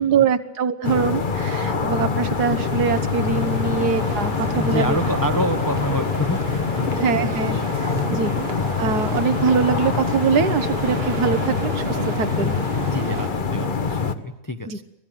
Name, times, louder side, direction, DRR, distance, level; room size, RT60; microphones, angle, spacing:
voice 1, 0.0-5.0 7.0-7.6 8.1-8.3 8.8-12.6 14.7-14.8, right 6 dB, 80° right, 10 dB, 1.7 m, -23 dB
sound 1, 0.8-14.1, left 5 dB, 35° left, 1.1 m, -24 dB
sound 2, 1.1-6.8, equal, 15° right, 1.4 m, -38 dB
sound 3, 2.5-13.3, right 6 dB, 45° right, 1.0 m, -34 dB
voice 2, 4.5-8.2 10.5-11.4 12.3-12.6 12.9-14.8, equal, 15° left, 8 dB, 0.8 m, -29 dB
24.0 x 17.0 x 7.7 m, 0.90 s
omnidirectional pair, 1.7 m